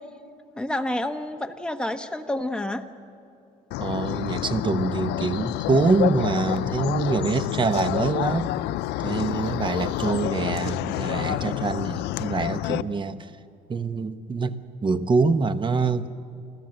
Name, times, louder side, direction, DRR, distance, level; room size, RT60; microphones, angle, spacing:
voice 1, 0.6-2.9, left 1 dB, 5° left, 6 dB, 1.1 m, -29 dB
sound 1, 3.7-12.8, left 16 dB, 85° left, 0.5 m, -28 dB
voice 2, 3.8-8.5 9.0-13.3 13.7-16.1, right 4 dB, 30° right, 11 dB, 1.0 m, -25 dB
30.0 x 13.0 x 7.8 m, 2.6 s
cardioid pair, 110°, 17 cm